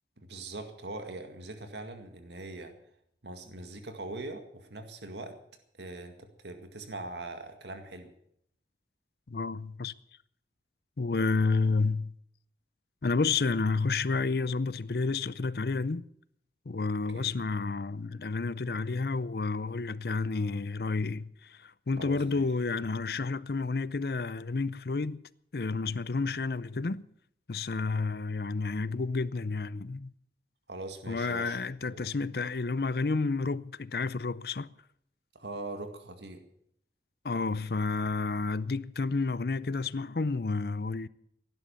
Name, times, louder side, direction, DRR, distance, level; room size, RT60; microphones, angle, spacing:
voice 1, 0.2-2.7 3.2-5.4 5.8-8.1 17.1-17.3 22.0-22.4 30.7-32.1 35.3-36.4, right 2 dB, 80° right, 2.0 m, -42 dB
voice 2, 9.3-9.9 11.0-12.1 13.0-16.1 16.7-25.2 25.5-27.1 27.5-30.1 31.1-34.7 37.2-41.1, left 4 dB, 60° left, 0.6 m, -30 dB
17.0 x 11.5 x 7.0 m
head